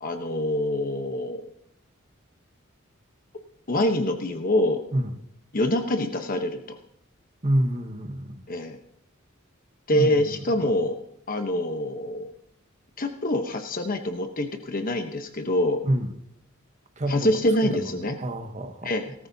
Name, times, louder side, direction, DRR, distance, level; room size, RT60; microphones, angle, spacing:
voice 1, 0.0-1.5 3.7-4.8 5.5-6.8 8.5-8.8 9.9-11.0 11.3-12.3 13.0-15.8 17.1-18.2 18.8-19.3, left 1 dB, 40° left, 6 dB, 1.0 m, -25 dB
voice 2, 7.4-8.4 9.9-10.3 15.8-16.1 17.0-17.4 17.6-17.9 18.2-18.9, right 1 dB, 35° right, 7 dB, 1.1 m, -27 dB
18.5 x 13.5 x 2.8 m, 0.76 s
head